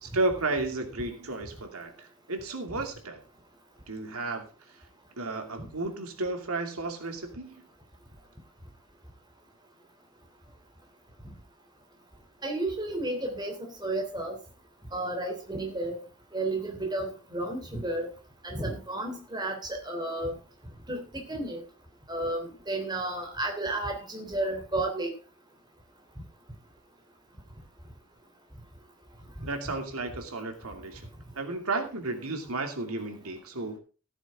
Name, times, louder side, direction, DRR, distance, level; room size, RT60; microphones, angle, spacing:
voice 1, 0.0-3.2 3.9-4.9 5.2-7.6 29.4-31.1 31.3-33.8, right 2 dB, 90° right, 5 dB, 2.6 m, -33 dB
voice 2, 12.4-14.4 14.9-16.0 16.3-18.1 18.4-20.4 20.9-21.6 22.1-25.1, right 2 dB, 20° right, 2 dB, 3.2 m, -32 dB
15.0 x 9.8 x 3.7 m, 0.34 s
head